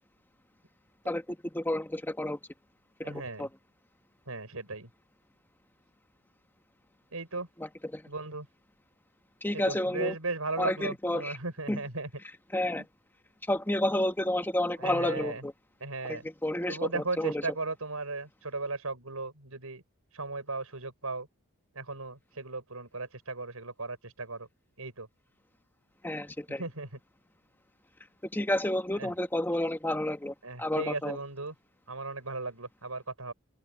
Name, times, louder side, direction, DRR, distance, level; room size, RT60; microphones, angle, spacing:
voice 1, 1.0-2.4 3.0-3.5 7.9-8.0 9.4-10.1 10.6-11.3 11.7-11.8 12.5-12.8 13.5-15.5 16.1-17.3 26.0-26.6 28.3-31.2, left 1 dB, 10° left, 1.3 m, -30 dB
voice 2, 3.0-3.5 4.3-4.9 7.1-7.5 8.1-8.5 9.5-12.1 14.8-15.5 15.8-16.3 16.7-19.8 20.1-21.3 21.7-24.5 24.8-25.1 26.5-27.0 28.9-29.1 30.4-31.5 31.9-33.3, right 3 dB, 90° right, 5.7 m, -36 dB
open air
head